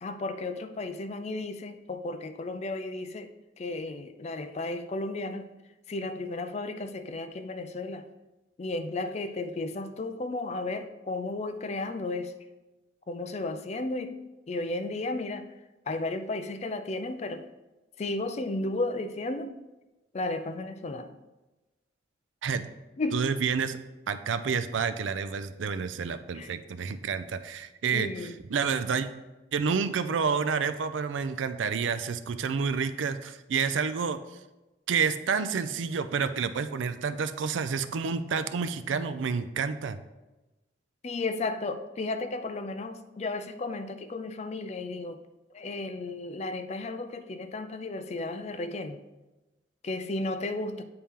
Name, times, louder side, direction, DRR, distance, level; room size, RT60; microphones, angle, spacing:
voice 1, 0.0-5.5 5.9-8.0 8.6-12.3 13.1-14.2 14.5-15.5 15.9-17.5 18.0-19.5 20.1-21.1 23.0-23.3 26.3-26.5 27.9-28.4 41.0-45.2 45.5-49.0 49.8-50.8, left 2 dB, 35° left, 9 dB, 0.4 m, -34 dB
voice 2, 23.1-23.8 24.1-29.1 29.5-34.2 34.9-40.0, right 6 dB, 80° right, 12 dB, 0.4 m, -29 dB
8.8 x 4.3 x 3.6 m, 1.1 s
head